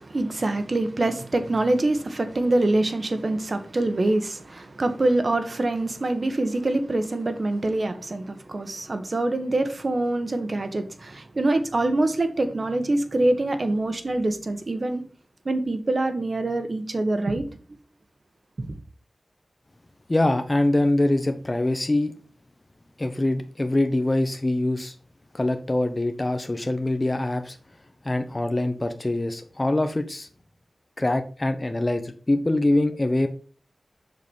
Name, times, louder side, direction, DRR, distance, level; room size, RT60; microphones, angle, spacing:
voice 1, 0.0-15.0 15.4-17.4 18.6-18.7, right 2 dB, 50° right, 1.5 m, -25 dB
voice 2, 20.1-22.1 23.0-24.9 25.3-27.6 28.0-30.3 31.0-33.3, left 1 dB, 30° left, 1.0 m, -24 dB
7.6 x 6.1 x 5.5 m
wide cardioid pair, 70°, 0 cm